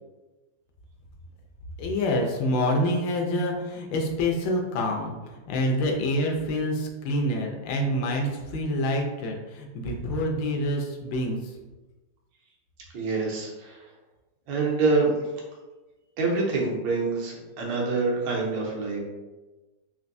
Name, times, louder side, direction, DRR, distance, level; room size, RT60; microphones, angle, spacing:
voice 1, 1.8-11.6, left 1 dB, 85° left, 1 dB, 1.4 m, -27 dB
voice 2, 12.9-13.8 14.5-15.1 16.2-19.0, right 3 dB, 85° right, -2 dB, 1.6 m, -26 dB
4.3 x 2.6 x 2.6 m, 1.1 s
omnidirectional pair, 2.0 m